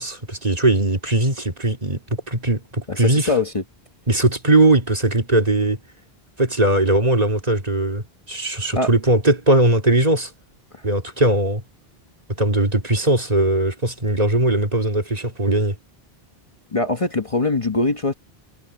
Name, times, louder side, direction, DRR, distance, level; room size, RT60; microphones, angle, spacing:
voice 1, 0.0-3.3 4.1-5.8 6.4-10.3 10.8-11.6 12.4-15.8, right 2 dB, 40° right, 2.5 m, -19 dB
voice 2, 2.9-3.6 8.7-8.9 16.7-18.1, left 3 dB, 35° left, 1.2 m, -22 dB
omnidirectional pair, 1.0 m